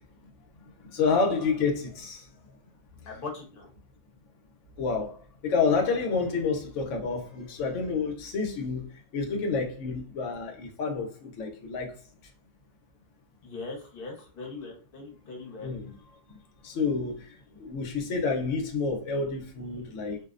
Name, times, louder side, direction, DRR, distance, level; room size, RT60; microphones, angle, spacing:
voice 1, 0.9-2.2 4.8-5.2 5.4-8.9 9.1-11.9 15.6-15.9 16.6-17.3 17.6-20.2, left 4 dB, 85° left, 1.0 m, -29 dB
voice 2, 3.1-3.7 13.4-15.7, left 3 dB, 50° left, 1.0 m, -40 dB
2.5 x 2.0 x 2.4 m
omnidirectional pair, 1.2 m